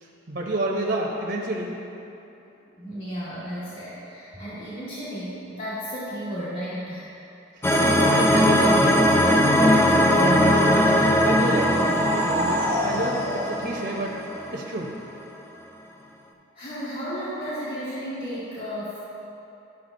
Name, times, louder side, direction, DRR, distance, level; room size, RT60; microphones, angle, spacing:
voice 1, 0.0-1.7 7.6-9.1 9.6-14.2 14.5-14.9, right 1 dB, 55° right, -1 dB, 0.8 m, -30 dB
voice 2, 2.8-7.1 16.5-19.0, equal, 45° left, -10 dB, 1.8 m, -33 dB
sound 1, 7.6-14.7, equal, 10° left, 0.4 m, -20 dB
sound 2, 11.2-14.7, equal, 80° left, 1.6 m, -30 dB
13.0 x 5.8 x 2.6 m, 2.9 s
head